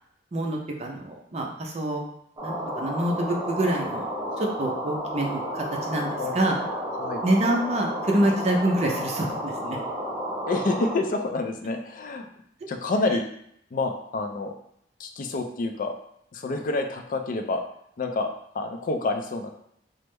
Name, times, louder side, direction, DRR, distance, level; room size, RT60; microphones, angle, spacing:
voice 1, 0.3-2.0 2.4-4.1 4.4-6.6 7.2-9.8, right 1 dB, 35° right, 0 dB, 0.5 m, -26 dB
sound 1, 2.4-11.0, equal, 20° right, 0.9 m, -32 dB
voice 2, 10.5-12.3 12.7-13.2 13.7-14.5 15.0-16.0 16.3-17.6 18.0-19.5, left 3 dB, 50° left, 5 dB, 0.4 m, -28 dB
3.4 x 2.0 x 3.1 m, 0.72 s
head